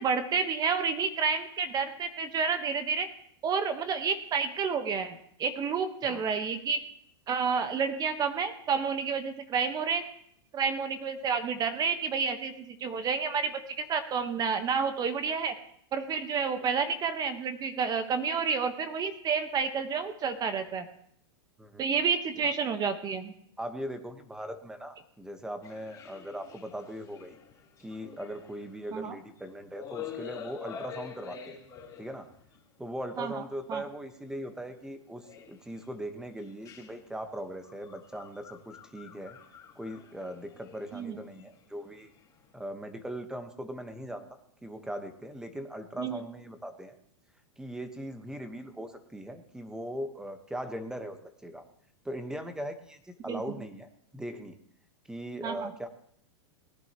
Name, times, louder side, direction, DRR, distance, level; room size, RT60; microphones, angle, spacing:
voice 1, 0.0-3.1 3.4-6.8 7.3-10.0 10.5-15.5 15.9-20.8 21.8-23.3 28.9-29.1 33.2-33.3 33.7-33.8 40.9-41.2 46.0-46.2 53.3-53.4 55.4-55.7, right 5 dB, 25° right, 9 dB, 1.1 m, -30 dB
voice 2, 21.6-21.9 23.6-27.4 27.8-31.6 32.0-32.3 32.8-39.4 39.7-42.1 42.5-47.0 47.6-51.6 52.0-54.6 55.1-55.9, equal, 5° right, 8 dB, 1.1 m, -40 dB
sound 1, 25.6-29.4 29.7-32.6 33.3-33.4 34.3-34.6 35.2-35.9 36.4-42.5, left 8 dB, 25° left, 3.0 m, -47 dB
19.0 x 10.5 x 3.0 m, 0.67 s
hypercardioid pair, 125°, 15 cm